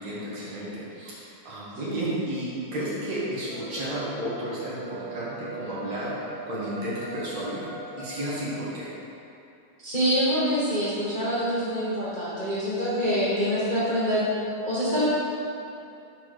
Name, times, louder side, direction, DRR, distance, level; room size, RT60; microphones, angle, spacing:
voice 1, 0.0-7.7 8.0-8.9, right 1 dB, 55° right, -7 dB, 2.3 m, -32 dB
sound 1, 3.3-8.7, right 2 dB, 40° right, 1.6 m, -40 dB
voice 2, 9.8-14.2 14.6-15.1, equal, 75° left, -12 dB, 0.4 m, -25 dB
6.0 x 4.4 x 6.3 m, 2.8 s
omnidirectional pair, 3.8 m